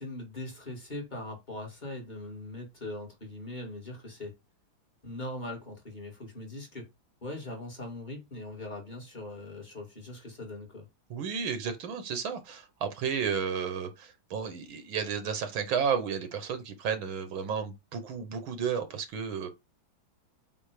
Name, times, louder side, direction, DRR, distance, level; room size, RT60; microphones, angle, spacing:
voice 1, 0.0-4.4 5.0-6.9 7.2-10.9, left 2 dB, 25° left, 2.2 m, -41 dB
voice 2, 11.1-19.5, right 7 dB, 80° right, 2.0 m, -32 dB
7.6 x 3.1 x 5.0 m
omnidirectional pair, 2.2 m